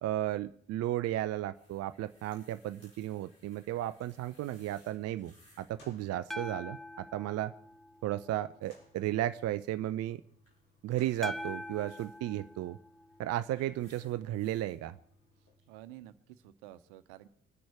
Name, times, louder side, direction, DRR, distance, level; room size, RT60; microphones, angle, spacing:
voice 1, 0.0-7.5 8.0-10.2 10.8-12.8 13.2-15.0, right 13 dB, 40° right, 13 dB, 0.6 m, -34 dB
sound 1, 1.5-5.8 6.0-6.8 10.4-12.2 13.0-14.8 15.6-15.7, equal, 90° left, 5.3 m, -65 dB
sound 2, 3.6-15.6, left 2 dB, 50° left, 5.9 m, -66 dB
sound 3, 6.3-8.5 11.2-13.6, left 1 dB, ahead, 0.7 m, -43 dB
voice 2, 15.7-17.3, right 14 dB, 60° right, 14 dB, 1.1 m, -51 dB
24.0 x 10.5 x 4.7 m, 0.65 s
figure-of-eight pair, 55°, 39 cm